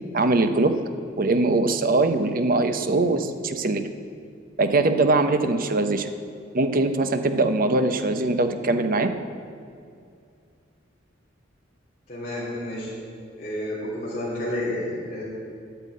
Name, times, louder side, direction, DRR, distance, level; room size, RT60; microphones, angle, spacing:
voice 1, 0.1-0.8 1.2-3.8 4.6-6.1 6.5-9.1, right 2 dB, 45° right, 8 dB, 0.8 m, -22 dB
voice 2, 12.1-12.9 13.4-15.2, left 1 dB, 35° left, -9 dB, 3.3 m, -30 dB
10.5 x 9.1 x 8.5 m, 2.4 s
head